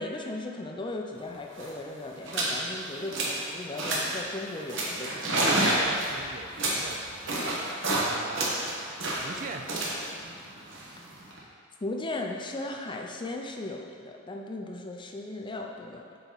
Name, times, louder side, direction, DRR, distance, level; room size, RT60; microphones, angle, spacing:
voice 1, 0.0-5.5 11.8-16.0, left 2 dB, 25° left, 2 dB, 0.5 m, -37 dB
sound 1, 1.2-1.3 1.5-1.8 2.2-2.6 2.9-3.4 3.8-4.2 4.7-8.1 8.3-11.4, right 1 dB, 65° right, 1.3 m, -29 dB
voice 2, 5.7-8.6 9.2-9.7, right 4 dB, 40° right, 5 dB, 0.4 m, -43 dB
8.1 x 4.3 x 4.0 m, 2.3 s
head